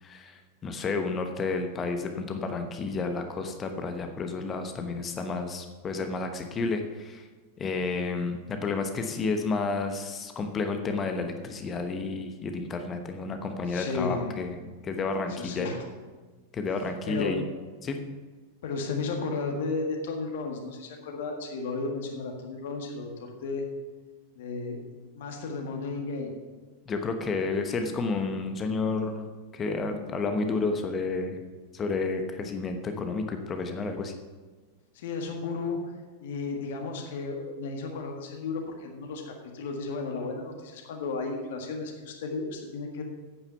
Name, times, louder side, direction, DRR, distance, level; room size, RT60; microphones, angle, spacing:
voice 1, 0.0-7.3 7.6-14.5 14.8-15.7 16.5-17.4 17.8-18.0 26.9-29.3 29.5-31.4 31.7-34.2, left 4 dB, 25° left, 6 dB, 1.0 m, -31 dB
voice 2, 13.7-14.5 15.4-15.8 17.1-17.3 18.6-23.1 23.4-23.6 24.4-24.8 25.2-26.4 34.9-35.8 36.2-43.0, left 4 dB, 55° left, 2 dB, 1.8 m, -33 dB
8.8 x 8.8 x 5.7 m, 1.4 s
figure-of-eight pair, 90°, 0 cm